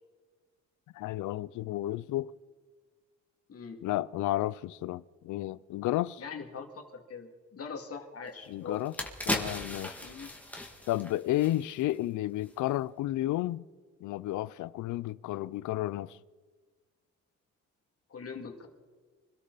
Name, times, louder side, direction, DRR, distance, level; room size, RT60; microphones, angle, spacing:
voice 1, 0.9-2.3 3.8-6.2 8.5-8.9 9.3-10.0 10.9-13.7 14.0-16.2, left 15 dB, 80° left, 0.5 m, -32 dB
voice 2, 3.5-3.8 6.2-8.8 10.0-10.3 18.1-18.7, left 5 dB, 50° left, 2.4 m, -42 dB
sound 1, 8.3-8.4 8.7-12.0 12.3-12.5, left 1 dB, 5° left, 2.2 m, -37 dB
25.0 x 13.0 x 4.1 m
cardioid pair, 90°, 30 cm